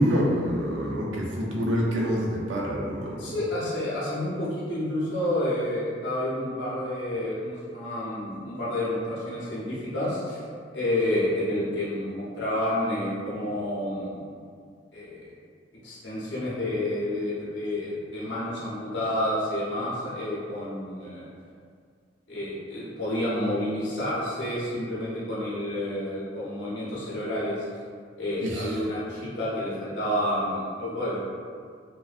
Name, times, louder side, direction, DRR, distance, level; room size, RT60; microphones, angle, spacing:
voice 1, 0.0-3.3 28.4-28.7, equal, 90° right, -3 dB, 0.5 m, -26 dB
voice 2, 3.2-10.4 10.7-14.2 14.9-15.2 15.8-21.3 22.3-27.6 28.2-31.2, left 1 dB, 70° left, -8 dB, 0.7 m, -29 dB
2.6 x 2.1 x 2.4 m, 2.1 s
head